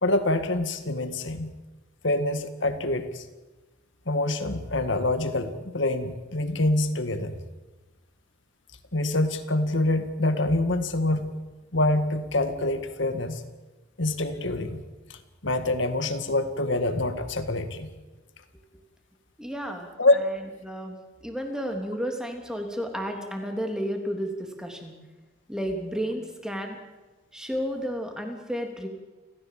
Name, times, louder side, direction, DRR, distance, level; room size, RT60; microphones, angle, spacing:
voice 1, 0.0-1.5 2.0-3.3 4.1-7.4 8.9-11.4 11.7-13.4 14.0-14.8 15.1-17.9 20.0-20.2, left 2 dB, 65° left, 9 dB, 1.9 m, -26 dB
voice 2, 19.4-19.9 20.6-21.0 21.2-24.9 25.5-26.8 27.3-28.9, equal, 5° right, 3 dB, 3.2 m, -32 dB
29.0 x 15.0 x 7.6 m, 1.2 s
head